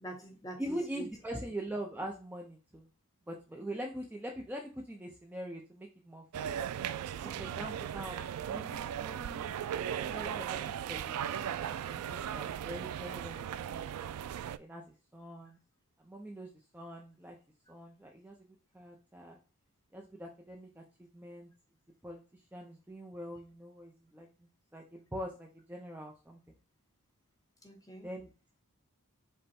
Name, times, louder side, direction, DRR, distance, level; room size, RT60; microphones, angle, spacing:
voice 1, 0.0-1.4 7.2-7.6 27.6-28.1, right 2 dB, 15° left, 1 dB, 1.0 m, -46 dB
voice 2, 0.6-2.9 3.3-6.5 7.4-9.5 9.9-11.2 11.6-13.4 13.7-13.9 14.6-15.6 16.0-16.5 16.7-17.4 17.7-18.4 18.7-19.4 19.9-20.8 21.1-21.5 22.0-22.2 22.5-24.3 24.7-26.4 28.0-28.3, right 1 dB, 10° right, 1 dB, 0.5 m, -43 dB
sound 1, 6.3-14.6, right 9 dB, 80° right, 0.3 m, -37 dB
5.3 x 2.1 x 4.2 m, 0.34 s
head